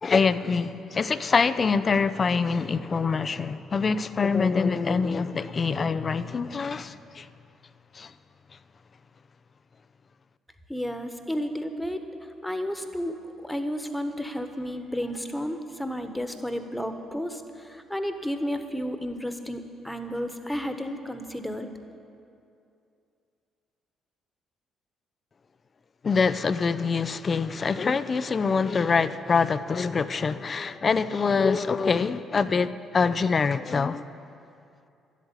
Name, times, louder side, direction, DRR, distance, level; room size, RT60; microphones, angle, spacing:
voice 1, 0.0-7.3 7.9-8.1 26.0-34.1, left 5 dB, 40° left, 0.6 m, -25 dB
voice 2, 10.7-12.0 12.4-13.2 13.4-21.7, equal, 5° left, 1.4 m, -32 dB
12.0 x 8.3 x 9.8 m
hypercardioid pair, 45°, 0 cm